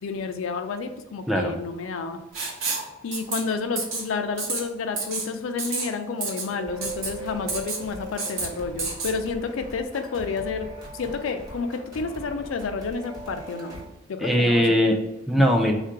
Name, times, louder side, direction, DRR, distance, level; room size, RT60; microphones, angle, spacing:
voice 1, 0.0-2.2 3.0-10.7 10.9-13.8 14.1-14.8, left 4 dB, 75° left, 7 dB, 0.4 m, -30 dB
Writing, 2.3-2.9 3.1-3.4 3.8-4.0 4.4-4.6 5.0-5.3 5.6-5.9 6.2-6.5 6.8-7.1 7.5-7.8 8.2-8.5 8.8-9.1, right 4 dB, 80° right, 0.8 m, -29 dB
Wind, 6.0-9.6 10.2-11.4 11.9-12.0, right 3 dB, 60° right, 0.5 m, -42 dB
sound 1, 6.6-13.8, equal, 20° right, 1.1 m, -42 dB
voice 2, 14.2-15.7, equal, ahead, 1 dB, 0.3 m, -20 dB
3.6 x 2.4 x 4.6 m, 0.93 s
head